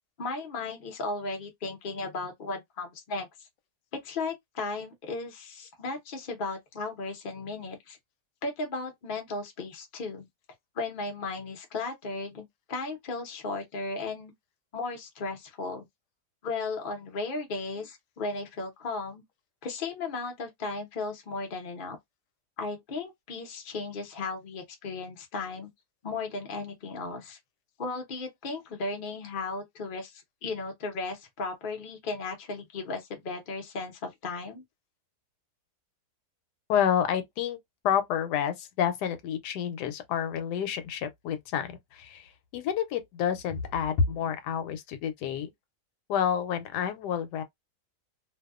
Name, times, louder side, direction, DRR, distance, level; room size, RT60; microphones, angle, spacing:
voice 1, 0.2-3.5 4.0-8.0 8.4-10.2 10.7-14.3 14.7-15.9 16.4-19.2 19.6-22.0 22.6-25.7 26.0-27.4 27.8-34.6, left 3 dB, 40° left, 0.8 m, -35 dB
voice 2, 36.7-37.6 37.8-45.5 46.1-47.4, left 8 dB, 90° left, 1.2 m, -29 dB
2.6 x 2.2 x 2.3 m
omnidirectional pair, 1.7 m